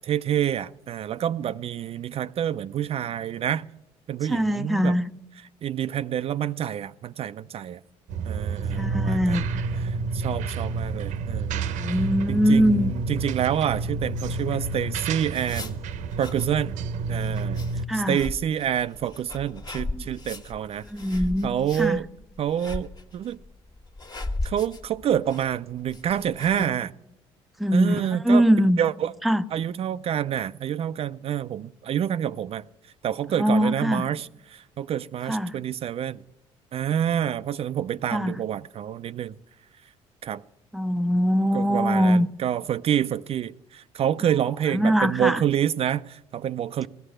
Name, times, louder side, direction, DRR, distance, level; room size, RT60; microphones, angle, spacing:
voice 1, 0.0-3.7 4.1-5.0 5.6-7.8 8.3-9.4 9.9-11.7 12.3-15.8 16.2-16.8 17.1-17.6 17.9-20.9 21.4-22.1 22.4-23.4 24.4-26.9 27.7-28.5 28.8-29.1 29.5-32.7 33.0-36.2 36.7-39.4 40.2-40.4 41.5-46.9, right 10 dB, 50° right, 0.4 m, -27 dB
voice 2, 4.3-5.1 8.8-9.6 11.8-12.9 17.9-18.2 19.9-20.0 20.8-22.0 27.6-28.8 29.2-29.4 33.4-34.0 35.3-35.6 38.1-38.4 40.7-42.3 44.7-45.4, equal, ahead, 0.6 m, -22 dB
sound 1, 8.1-17.9, right 4 dB, 75° right, 0.9 m, -29 dB
sound 2, 14.7-26.8, left 2 dB, 30° left, 1.6 m, -37 dB
16.0 x 11.5 x 6.5 m
supercardioid pair, 80°, 13 cm